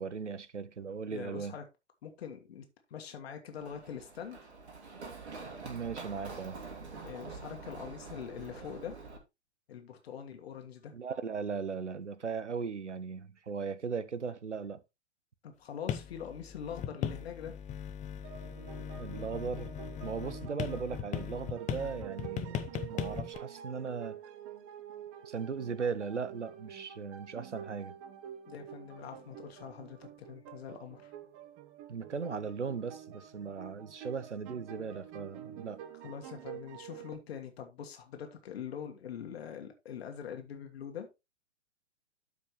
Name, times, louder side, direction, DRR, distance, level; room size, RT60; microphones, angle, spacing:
voice 1, 0.0-1.6 5.6-6.6 10.9-14.8 19.0-19.7 20.0-24.2 25.2-28.0 31.9-35.8, right 5 dB, 85° right, 0.8 m, -38 dB
voice 2, 1.1-1.6 2.0-2.6 2.9-4.4 7.0-8.9 9.7-10.9 15.4-17.5 28.5-31.1 36.0-41.1, left 8 dB, 60° left, 1.6 m, -43 dB
Run, 3.6-9.2, right 4 dB, 70° right, 2.7 m, -46 dB
sound 1, 15.9-23.4, left 9 dB, 20° left, 0.8 m, -39 dB
sound 2, 18.2-37.1, right 10 dB, 35° right, 1.1 m, -48 dB
12.5 x 5.1 x 3.1 m
figure-of-eight pair, 100°, 34 cm